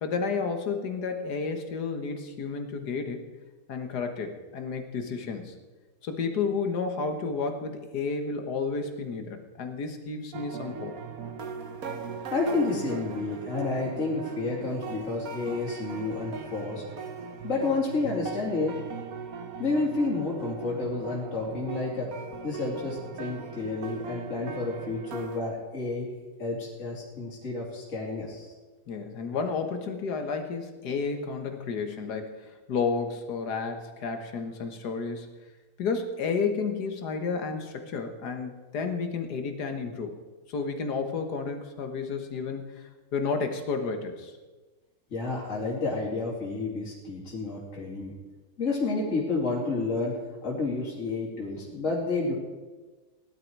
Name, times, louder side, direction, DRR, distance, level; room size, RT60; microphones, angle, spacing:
voice 1, 0.0-3.3 3.7-5.5 6.0-10.9 28.9-35.3 35.8-40.2 40.5-44.3, left 5 dB, 55° left, 6 dB, 1.8 m, -31 dB
sound 1, 10.3-25.4, right 5 dB, 50° right, 1.2 m, -39 dB
voice 2, 12.3-16.8 17.4-18.8 19.6-22.1 22.4-26.1 26.4-28.5 45.1-48.1 48.6-52.3, left 3 dB, 35° left, -5 dB, 3.2 m, -30 dB
16.5 x 11.5 x 4.7 m, 1.3 s
omnidirectional pair, 2.3 m